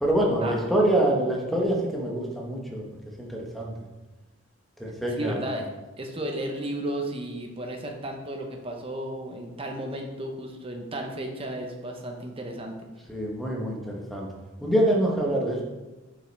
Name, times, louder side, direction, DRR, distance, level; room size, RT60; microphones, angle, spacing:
voice 1, 0.0-2.8 3.2-3.7 4.8-5.4 13.1-14.3 14.6-15.6, right 1 dB, ahead, -2 dB, 1.2 m, -25 dB
voice 2, 5.2-5.7 6.0-12.7, right 1 dB, 25° right, 2 dB, 1.0 m, -33 dB
8.6 x 5.5 x 3.4 m, 1.1 s
head